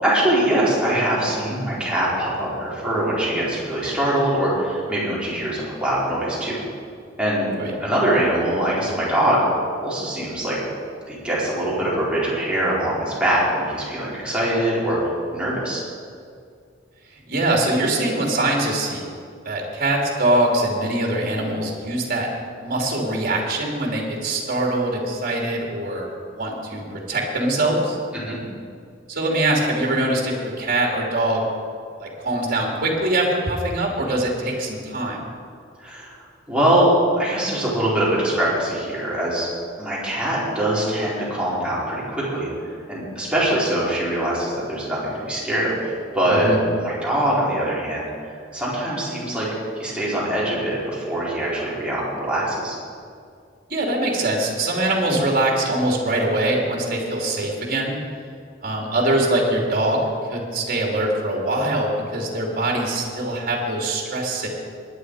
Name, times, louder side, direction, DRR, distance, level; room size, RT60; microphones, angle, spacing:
voice 1, 0.0-6.6 7.2-7.5 7.8-9.5 9.8-10.6 11.1-15.8 28.1-28.4 35.8-36.2 36.5-39.5 39.8-42.5 42.9-46.5 46.8-49.5 49.8-52.8, right 1 dB, 5° right, -8 dB, 4.7 m, -23 dB
voice 2, 17.3-19.0 19.4-22.3 22.6-28.0 29.1-31.4 32.0-35.2 46.4-46.6 53.7-58.0 58.6-60.0 60.3-64.5, right 1 dB, 50° right, 0 dB, 2.9 m, -23 dB
21.0 x 10.0 x 4.9 m, 2.3 s
head